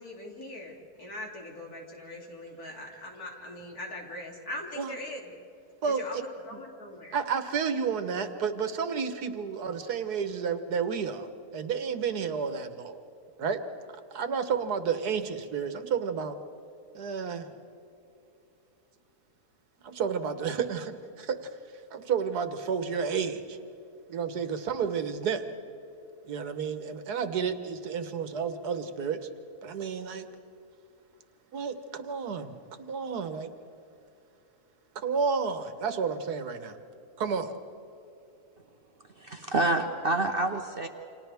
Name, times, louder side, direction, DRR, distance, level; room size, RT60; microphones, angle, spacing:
voice 1, 0.0-5.2 5.9-7.2, left 1 dB, 65° left, -2 dB, 3.5 m, -41 dB
voice 2, 5.8-6.2 7.1-13.0 13.4-13.6 14.1-16.4 16.9-17.5 19.8-21.5 21.9-23.6 24.1-25.5 26.3-29.2 29.6-30.3 31.5-33.5 35.0-36.8 37.2-37.5, right 6 dB, 75° right, 9 dB, 1.6 m, -31 dB
voice 3, 39.2-40.9, right 2 dB, 45° right, 4 dB, 0.9 m, -27 dB
29.0 x 26.5 x 3.5 m, 2.8 s
omnidirectional pair, 1.7 m